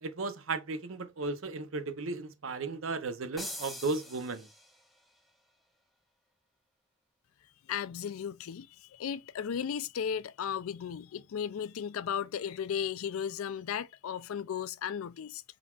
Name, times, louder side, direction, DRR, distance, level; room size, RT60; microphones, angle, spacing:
voice 1, 0.0-4.5, right 3 dB, 70° right, 0.7 m, -35 dB
sound 1, 3.4-5.0, left 1 dB, ahead, 0.7 m, -43 dB
voice 2, 7.7-15.4, left 8 dB, 80° left, 0.4 m, -35 dB
4.3 x 3.9 x 2.3 m
head